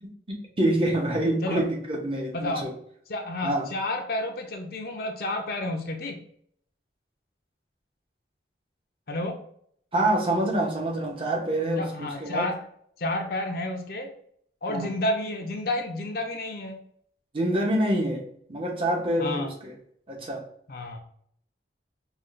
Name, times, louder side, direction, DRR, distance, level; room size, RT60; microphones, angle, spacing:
voice 1, 0.0-2.7 3.4-3.7 9.9-12.5 14.7-14.9 17.3-19.8 20.1-20.4, right 1 dB, 30° right, -1 dB, 0.9 m, -26 dB
voice 2, 2.3-2.7 3.1-6.2 9.1-9.4 11.8-12.6 13.0-14.1 14.6-16.8 19.2-19.5 20.7-21.0, left 1 dB, 55° left, 3 dB, 0.6 m, -30 dB
5.0 x 2.4 x 2.5 m, 0.65 s
head